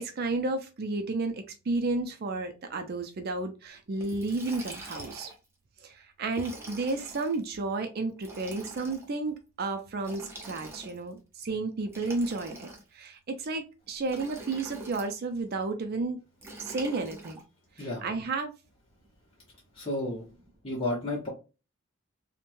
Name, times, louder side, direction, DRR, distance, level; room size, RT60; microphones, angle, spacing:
voice 1, 0.0-5.3 5.8-16.2 16.6-17.4 17.8-18.5, right 3 dB, 45° right, 6 dB, 0.4 m, -32 dB
Liquid, 4.0-5.4 6.3-7.4 8.2-9.1 10.0-11.1 11.9-13.1 14.1-15.1 16.4-17.4, right 1 dB, 10° right, 0.7 m, -44 dB
voice 2, 19.8-20.3 20.6-21.3, left 1 dB, 25° left, -5 dB, 0.9 m, -31 dB
3.0 x 2.1 x 2.5 m, 0.30 s
head